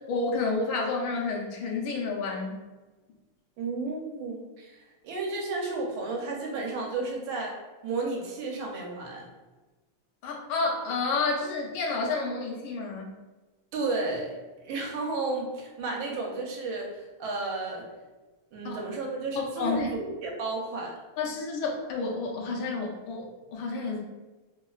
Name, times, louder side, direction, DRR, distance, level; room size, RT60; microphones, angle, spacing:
voice 1, 0.1-2.6 10.2-13.1 18.6-18.8 19.4-19.9 21.2-24.0, left 3 dB, 75° left, -1 dB, 1.3 m, -30 dB
voice 2, 3.6-4.8 5.0-7.6 7.8-9.3 13.7-14.3 14.6-17.9 18.5-20.9, right 3 dB, 75° right, -1 dB, 1.4 m, -32 dB
3.7 x 2.1 x 2.3 m, 1.2 s
omnidirectional pair, 2.3 m